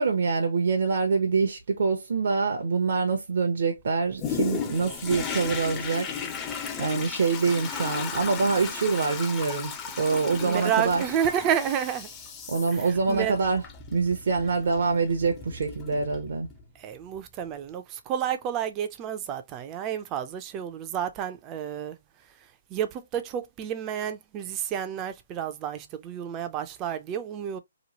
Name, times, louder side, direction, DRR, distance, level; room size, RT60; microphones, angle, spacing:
voice 1, 0.0-6.1 6.5-11.0 12.5-13.6 13.9-16.5, right 4 dB, 65° right, 0.6 m, -25 dB
Toilet flush, 4.2-16.6 17.2-17.3, left 6 dB, 20° left, 0.6 m, -36 dB
voice 2, 10.4-12.1 12.7-13.4 16.8-22.0 22.7-27.6, right 9 dB, 25° right, 0.4 m, -30 dB
3.0 x 2.3 x 2.8 m
hypercardioid pair, 145°, 0 cm